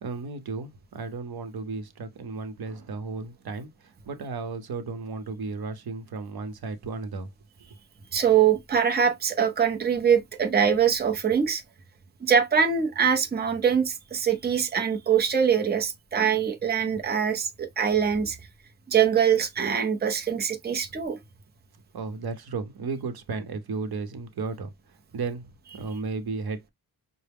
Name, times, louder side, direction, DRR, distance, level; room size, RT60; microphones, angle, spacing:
voice 1, 0.0-7.3 21.9-26.7, right 4 dB, 75° right, 0.8 m, -34 dB
voice 2, 8.1-11.6 12.2-18.4 18.9-21.2, right 7 dB, 25° right, 0.6 m, -23 dB
5.6 x 2.0 x 3.4 m
wide cardioid pair, 170°, 38 cm